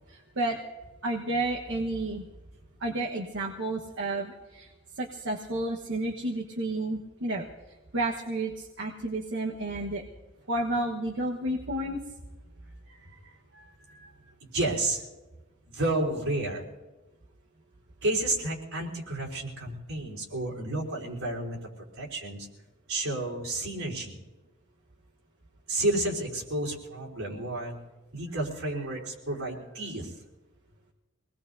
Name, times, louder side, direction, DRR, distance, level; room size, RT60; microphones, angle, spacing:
voice 1, 0.1-0.6 1.0-2.2 2.8-4.7 4.9-7.5 7.9-10.0 10.5-12.0, right 2 dB, 65° right, -1 dB, 1.3 m, -31 dB
voice 2, 12.9-14.1 14.4-15.0 15.7-16.6 18.0-21.6 22.0-22.5 22.9-24.2 25.7-27.8 28.1-30.1, right 2 dB, 80° right, -2 dB, 4.0 m, -31 dB
26.0 x 19.5 x 2.7 m, 1.1 s
head